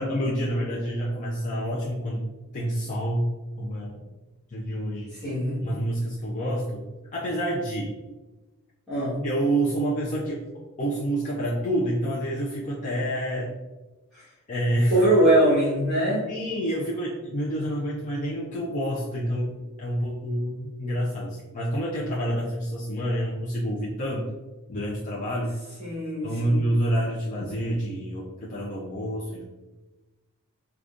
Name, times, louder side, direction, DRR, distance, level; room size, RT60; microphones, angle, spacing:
voice 1, 0.0-2.2 2.5-3.3 3.6-4.0 4.5-5.1 5.6-6.8 7.1-7.9 9.2-10.4 10.8-13.5 14.5-14.9 16.3-24.2 24.7-25.5 26.2-29.4, right 1 dB, 35° left, -5 dB, 0.5 m, -28 dB
voice 2, 5.1-5.6 8.9-9.2 14.1-14.2 14.9-16.2 25.8-26.6, right 1 dB, ahead, -16 dB, 1.4 m, -22 dB
4.8 x 2.3 x 2.5 m, 1.1 s
head